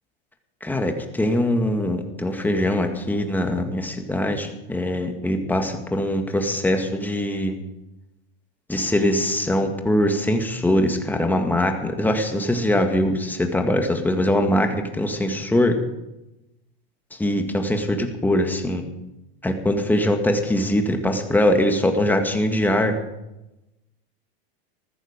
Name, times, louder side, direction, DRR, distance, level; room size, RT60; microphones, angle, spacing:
voice 1, 0.6-7.5 8.7-15.8 17.1-18.8 19.4-22.9, left 1 dB, 5° left, 4 dB, 1.9 m, -22 dB
15.0 x 13.5 x 5.2 m, 0.95 s
hypercardioid pair, 115°, 31 cm